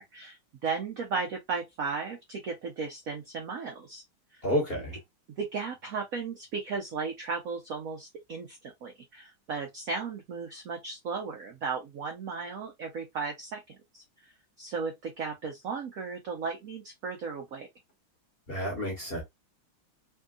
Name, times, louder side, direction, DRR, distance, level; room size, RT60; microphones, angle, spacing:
voice 1, 0.0-4.0 4.3-4.4 5.4-14.3 14.6-17.7, right 5 dB, 65° right, 0.8 m, -35 dB
voice 2, 4.4-4.9 18.5-19.2, equal, 35° left, 1.2 m, -30 dB
3.5 x 2.7 x 2.3 m
omnidirectional pair, 2.3 m